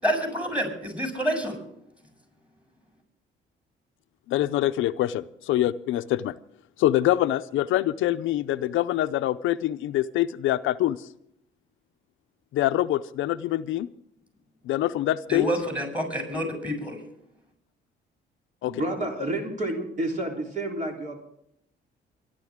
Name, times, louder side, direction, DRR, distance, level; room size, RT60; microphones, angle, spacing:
voice 1, 0.0-1.6 15.3-17.0, equal, 5° right, 3 dB, 7.4 m, -28 dB
voice 2, 4.3-6.3 6.8-11.0 12.5-13.9 14.7-15.5 18.6-18.8, left 14 dB, 85° left, 12 dB, 0.6 m, -25 dB
voice 3, 18.6-21.2, right 1 dB, 40° right, 1 dB, 3.6 m, -30 dB
24.0 x 11.5 x 3.6 m, 0.75 s
cardioid pair, 90°, 20 cm